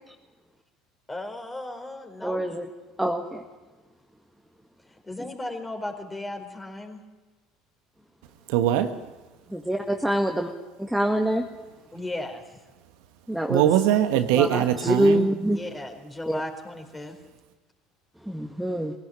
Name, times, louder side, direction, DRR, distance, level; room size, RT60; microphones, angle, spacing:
voice 1, 1.1-2.4 5.0-7.0 11.9-12.4 15.5-17.1, left 1 dB, 15° left, 3 dB, 4.5 m, -35 dB
voice 2, 2.2-2.7 3.0-3.4 9.5-10.3 10.9-11.5 13.3-13.7 14.3-15.6 16.3-16.4 18.3-18.9, right 1 dB, 5° right, 2 dB, 1.9 m, -25 dB
voice 3, 8.5-8.9 13.5-15.3, right 11 dB, 70° right, 8 dB, 1.3 m, -21 dB
21.0 x 16.5 x 8.9 m, 1.2 s
hypercardioid pair, 65°, 0 cm